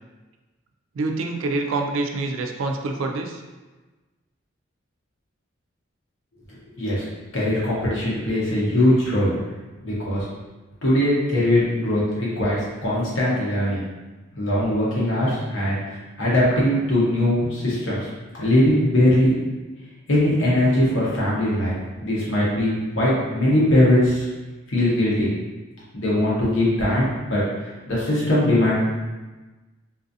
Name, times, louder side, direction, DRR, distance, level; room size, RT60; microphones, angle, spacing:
voice 1, 1.0-3.4, right 3 dB, 75° right, 3 dB, 0.4 m, -26 dB
voice 2, 7.3-9.3 9.8-10.3 10.8-13.8 14.4-18.0 18.3-19.4 20.1-21.8 22.0-24.3 24.7-25.3 25.9-27.4 27.9-28.8, left 1 dB, 70° left, -7 dB, 0.9 m, -20 dB
3.9 x 2.5 x 2.6 m, 1.2 s
head